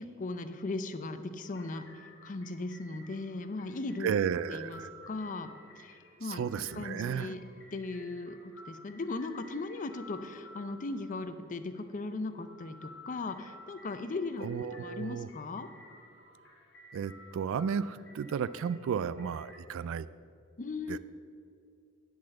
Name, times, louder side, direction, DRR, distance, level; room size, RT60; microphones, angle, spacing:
voice 1, 0.0-4.1 4.5-4.8 5.1-5.5 5.8-7.4 7.7-15.7 20.6-21.0, left 3 dB, 40° left, 10 dB, 0.5 m, -38 dB
sound 1, 1.5-19.6, left 1 dB, 60° left, 1.6 m, -55 dB
voice 2, 4.0-4.9 6.2-7.3 14.4-15.3 16.9-20.1 20.9-21.0, right 7 dB, 70° right, 17 dB, 0.3 m, -33 dB
10.5 x 4.1 x 7.4 m, 2.4 s
head